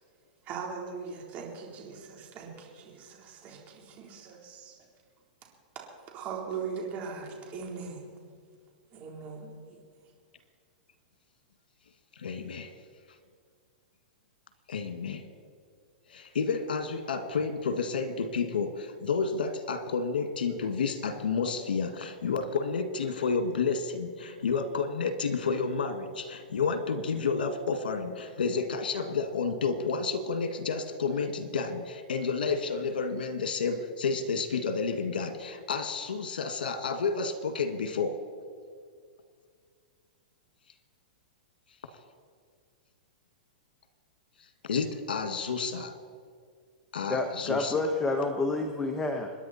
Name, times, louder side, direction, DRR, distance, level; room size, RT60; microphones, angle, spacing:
voice 1, 0.4-4.8 6.1-8.1 8.9-9.8, right 5 dB, 30° right, 0 dB, 3.7 m, -40 dB
voice 2, 12.2-12.7 14.7-15.2 16.1-38.2 44.6-45.9 46.9-47.9, left 5 dB, 85° left, 8 dB, 1.9 m, -30 dB
voice 3, 47.1-49.3, left 3 dB, 10° left, 4 dB, 1.2 m, -29 dB
27.0 x 10.5 x 4.3 m, 2.1 s
hypercardioid pair, 140°, 5 cm